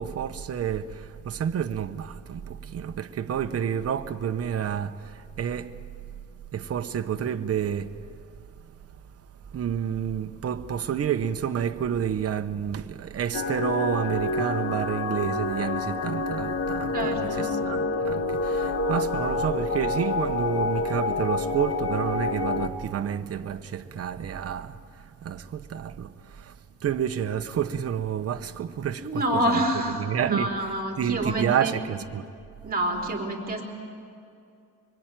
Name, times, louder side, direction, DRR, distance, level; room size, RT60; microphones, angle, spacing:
voice 1, 0.0-5.8 6.5-8.0 9.5-26.5 26.8-29.6 30.0-32.3, right 8 dB, 45° right, 1.1 m, -29 dB
sound 1, 13.3-22.7, left 3 dB, 55° left, 1.6 m, -28 dB
voice 2, 16.9-17.6 29.0-31.7 32.6-33.6, right 1 dB, 30° right, 3.6 m, -28 dB
25.0 x 24.0 x 9.2 m
cardioid pair, 140°, 33 cm